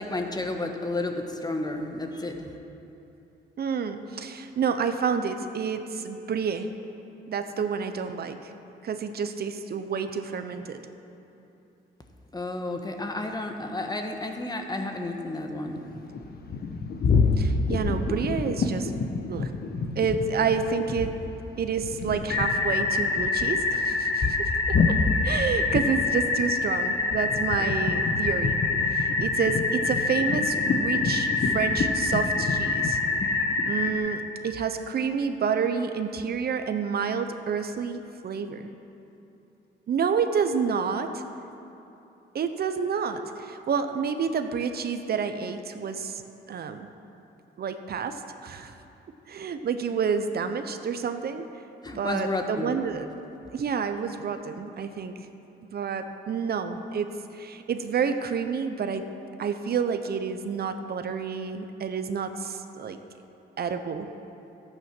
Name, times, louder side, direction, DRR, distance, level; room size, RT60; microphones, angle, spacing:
voice 1, 0.0-2.5 12.3-15.8 51.8-52.7, left 2 dB, 20° left, 4 dB, 1.3 m, -31 dB
voice 2, 3.6-6.7 7.3-8.5 8.8-10.8 17.4-18.9 19.2-19.5 20.0-21.2 21.6-25.0 25.2-28.6 28.9-33.0 33.6-38.7 39.9-41.2 42.3-46.2 46.5-46.9 47.6-48.7 49.3-51.4 51.9-53.1 53.5-55.1 55.7-59.1 59.4-63.0 63.6-64.1, right 6 dB, 50° right, 8 dB, 0.8 m, -29 dB
sound 1, 15.7-21.3 21.6-34.0, left 4 dB, 50° left, 1.1 m, -28 dB
sound 2, 22.3-33.9, left 3 dB, 75° left, 1.6 m, -26 dB
12.5 x 8.9 x 6.1 m, 2.9 s
cardioid pair, 90°, 20 cm